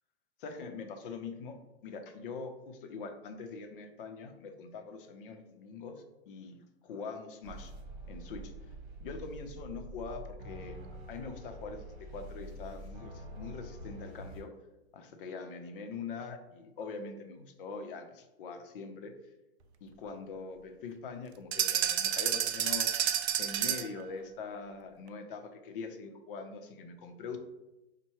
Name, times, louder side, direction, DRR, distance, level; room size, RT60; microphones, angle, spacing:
voice 1, 0.4-1.6 1.8-7.7 8.1-8.5 9.0-10.8 11.1-14.5 14.9-19.1 19.8-22.9 23.4-27.4, left 4 dB, 50° left, 6 dB, 0.6 m, -43 dB
sound 1, 7.4-14.4, right 1 dB, 50° right, 1.2 m, -46 dB
sound 2, 21.5-24.0, right 9 dB, 70° right, 0.5 m, -30 dB
5.4 x 2.2 x 3.0 m, 0.96 s
hypercardioid pair, 135°, 34 cm